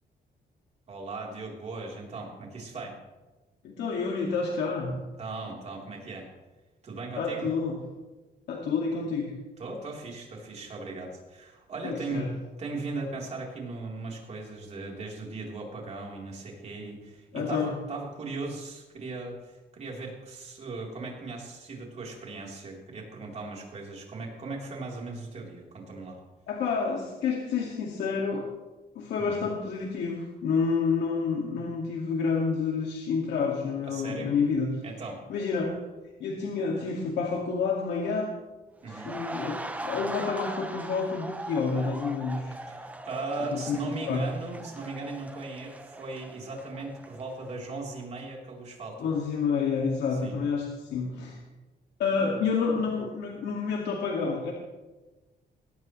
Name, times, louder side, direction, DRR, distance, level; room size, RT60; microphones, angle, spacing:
voice 1, 0.9-3.0 5.2-6.3 6.8-7.5 9.6-12.3 12.6-26.2 29.2-29.5 33.8-34.3 34.8-35.2 38.8-39.1 42.7-49.1 50.1-50.4, right 3 dB, 40° right, -1 dB, 3.7 m, -38 dB
voice 2, 3.6-5.1 7.2-7.7 8.5-9.3 11.8-12.3 17.3-17.7 26.5-28.4 29.0-34.7 35.3-35.7 36.2-38.3 38.9-42.5 43.5-44.3 49.0-51.4 52.0-54.5, left 5 dB, 90° left, -1 dB, 2.1 m, -29 dB
sound 1, 38.8-47.7 48.0-48.2, right 1 dB, 10° right, 0.8 m, -40 dB
20.5 x 17.5 x 3.2 m, 1.2 s
cardioid pair, 155°, 17 cm